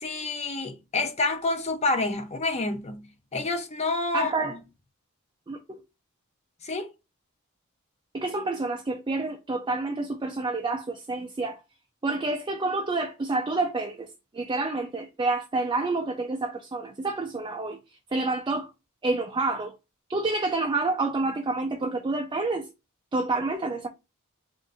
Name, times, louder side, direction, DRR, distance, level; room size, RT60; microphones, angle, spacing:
voice 1, 0.0-3.1 3.3-4.6 6.6-6.9, left 3 dB, 30° left, 0.6 m, -28 dB
voice 2, 4.1-4.6 5.5-5.8 8.1-11.6 12.0-14.1 14.3-17.8 18.1-18.7 19.0-19.7 20.1-22.7 23.1-23.9, right 3 dB, 20° right, 0.4 m, -28 dB
3.6 x 2.5 x 3.9 m
head